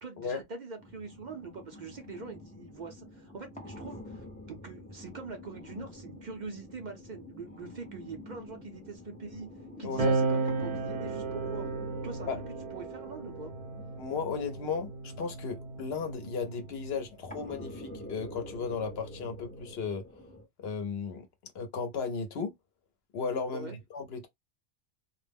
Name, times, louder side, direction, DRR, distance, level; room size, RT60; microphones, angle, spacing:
voice 1, 0.0-9.5 9.8-11.7 12.0-12.3 12.7-13.5 23.5-23.8, right 4 dB, 50° right, 0.6 m, -43 dB
sound 1, 0.8-20.4, left 1 dB, 10° left, 0.4 m, -47 dB
voice 2, 9.8-10.1 12.3-12.4 14.0-20.0 20.6-21.2 21.5-22.5 23.1-24.3, left 5 dB, 65° left, 0.9 m, -35 dB
sound 2, 10.0-16.9 17.9-19.7, right 4 dB, 70° right, 1.0 m, -35 dB
2.3 x 2.0 x 3.3 m
omnidirectional pair, 1.1 m